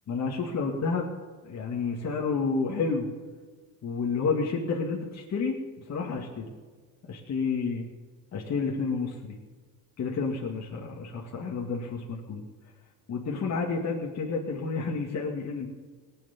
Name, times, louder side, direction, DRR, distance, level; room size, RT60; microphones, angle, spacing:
voice 1, 0.1-1.1 1.4-3.1 3.8-5.6 5.9-6.5 7.0-7.9 8.3-9.4 10.0-12.4 13.1-15.7, left 4 dB, 45° left, -1 dB, 2.2 m, -30 dB
18.5 x 8.6 x 7.2 m, 1.5 s
cardioid pair, 110°, 38 cm